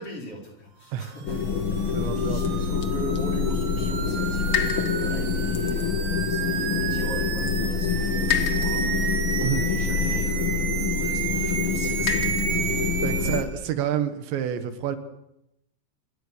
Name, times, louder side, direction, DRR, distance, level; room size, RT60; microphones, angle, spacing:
voice 1, 0.0-13.6, left 1 dB, 35° left, 1 dB, 4.8 m, -41 dB
sound 1, 1.2-13.4, right 8 dB, 55° right, 2.9 m, -32 dB
sound 2, 1.3-13.4, left 5 dB, 55° left, 1.4 m, -26 dB
voice 2, 1.9-2.7 9.4-9.6 13.0-15.0, right 10 dB, 80° right, 10 dB, 3.7 m, -28 dB
27.0 x 21.5 x 6.8 m, 0.82 s
omnidirectional pair, 5.1 m